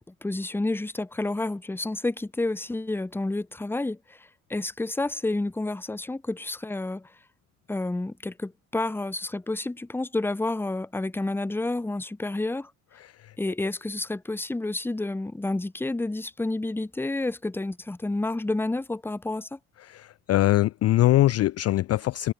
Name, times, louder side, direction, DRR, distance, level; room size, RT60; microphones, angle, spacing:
voice 1, 0.0-4.2 4.5-7.1 7.7-12.7 13.4-19.6, left 2 dB, 5° left, 0.8 m, -30 dB
voice 2, 13.0-13.3 19.8-22.3, left 15 dB, 35° left, 0.5 m, -23 dB
figure-of-eight pair, 50°, 43 cm